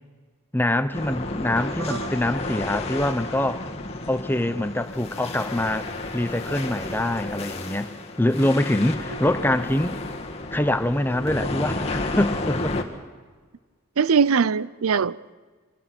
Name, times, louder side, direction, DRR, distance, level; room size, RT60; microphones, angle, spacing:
voice 1, 0.5-3.7 4.1-7.9 8.2-10.0 10.5-12.8, left 1 dB, 10° left, 0.7 m, -24 dB
sound 1, 0.9-12.8, left 2 dB, 30° left, 1.6 m, -32 dB
voice 2, 14.0-15.3, right 6 dB, 80° right, 0.6 m, -22 dB
24.5 x 20.0 x 6.0 m
head